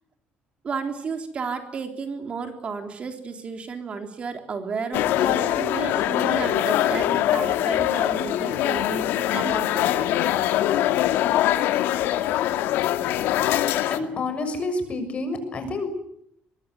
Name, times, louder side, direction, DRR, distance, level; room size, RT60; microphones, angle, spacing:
voice 1, 0.6-10.1, right 5 dB, 35° right, 6 dB, 3.7 m, -33 dB
sound 1, 4.9-14.0, left 13 dB, 85° left, 1.8 m, -23 dB
voice 2, 13.9-15.9, left 2 dB, 35° left, 8 dB, 6.7 m, -28 dB
23.5 x 22.5 x 9.5 m, 0.72 s
cardioid pair, 135°, 4 cm